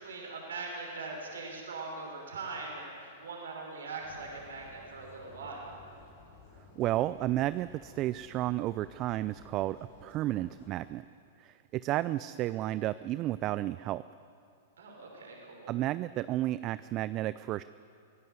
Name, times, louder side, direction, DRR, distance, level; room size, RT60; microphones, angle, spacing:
voice 1, 0.0-5.7 14.8-15.7, right 3 dB, 80° right, 0 dB, 5.7 m, -41 dB
sound 1, 4.0-10.9, left 4 dB, 60° left, 5.7 m, -56 dB
voice 2, 6.8-11.0 11.4-14.0 15.7-17.6, right 15 dB, 35° right, 15 dB, 0.4 m, -32 dB
25.0 x 16.5 x 8.1 m, 2.4 s
hypercardioid pair, 115°, 0 cm